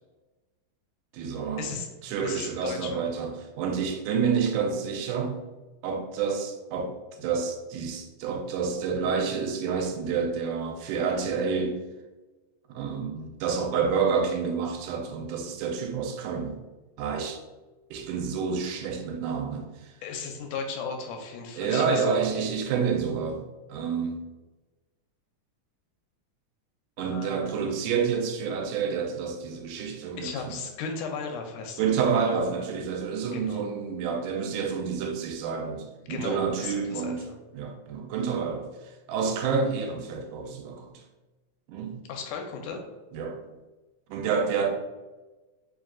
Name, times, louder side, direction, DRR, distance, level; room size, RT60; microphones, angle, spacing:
voice 1, 1.1-1.7 2.0-5.4 5.8-11.8 12.7-16.6 17.0-17.4 17.9-19.9 21.6-23.4 23.7-24.2 27.0-30.6 31.8-37.2 37.5-41.0 41.7-42.0 43.1-43.4 44.1-44.7, right 6 dB, 90° right, 4 dB, 2.1 m, -29 dB
voice 2, 2.2-3.0 20.0-22.4 27.0-27.7 30.2-31.9 33.3-33.6 36.0-37.4 42.1-42.8, left 5 dB, 85° left, 3 dB, 2.1 m, -36 dB
4.8 x 3.6 x 2.3 m, 1.2 s
omnidirectional pair, 3.6 m